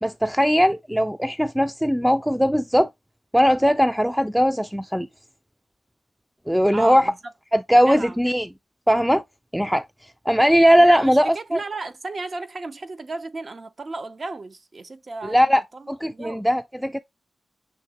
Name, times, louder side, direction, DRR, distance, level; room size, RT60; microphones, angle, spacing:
voice 1, 0.0-2.9 3.3-5.1 6.5-7.1 7.5-8.5 8.9-9.2 9.5-9.9 10.3-11.6 15.3-15.6 15.9-17.0, equal, 5° right, 0.3 m, -19 dB
voice 2, 6.7-7.3 7.8-8.2 10.8-16.4, right 3 dB, 50° right, 0.6 m, -34 dB
6.4 x 2.9 x 2.8 m
cardioid pair, 55°, 0 cm